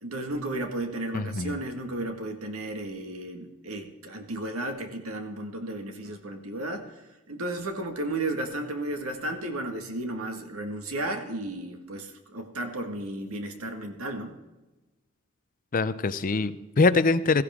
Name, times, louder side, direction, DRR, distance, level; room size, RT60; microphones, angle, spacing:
voice 1, 0.0-6.9 7.3-14.4, right 1 dB, 90° right, 5 dB, 1.8 m, -33 dB
voice 2, 1.1-1.6 15.7-17.4, left 3 dB, 40° left, 14 dB, 0.6 m, -23 dB
16.0 x 14.5 x 3.7 m, 1.1 s
head